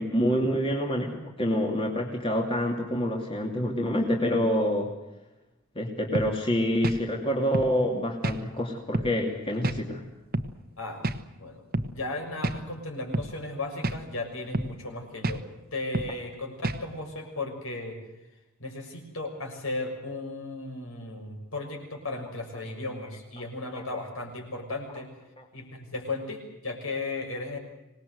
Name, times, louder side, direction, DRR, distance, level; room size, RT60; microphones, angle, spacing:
voice 1, 0.0-4.9 5.7-10.0 23.7-24.0 25.4-25.5, equal, 25° left, 1 dB, 2.7 m, -27 dB
sound 1, 6.1-6.3 6.8-7.0 7.5-7.7 8.2-8.4 8.9-9.1 9.6-9.8 10.3-10.5 11.0-11.2 11.7-11.9 12.4-12.6 13.1-13.3 13.8-14.0 14.5-14.7 15.2-15.4 15.9-16.1 16.6-16.8, right 1 dB, 45° right, 1.3 m, -29 dB
voice 2, 11.4-15.4 15.7-18.0 18.6-25.1 25.5-27.6, left 2 dB, 65° left, 3 dB, 6.4 m, -35 dB
25.0 x 19.5 x 8.0 m, 0.98 s
head